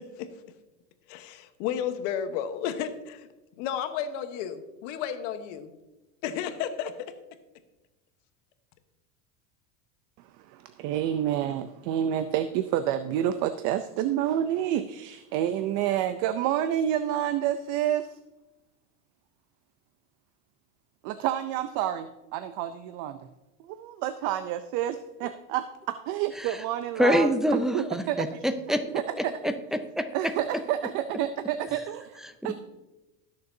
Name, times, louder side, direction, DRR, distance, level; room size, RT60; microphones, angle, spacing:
voice 1, 1.1-3.3 3.6-5.7 6.2-6.9, left 9 dB, 65° left, 9 dB, 1.2 m, -32 dB
voice 2, 10.5-18.2 21.0-23.2 23.6-28.4 28.9-29.5 30.1-32.5, right 11 dB, 50° right, 11 dB, 0.5 m, -29 dB
voice 3, 27.0-28.8 29.1-30.1 32.2-32.5, equal, ahead, 7 dB, 0.4 m, -26 dB
19.5 x 6.8 x 2.7 m, 1.1 s
supercardioid pair, 135°, 39 cm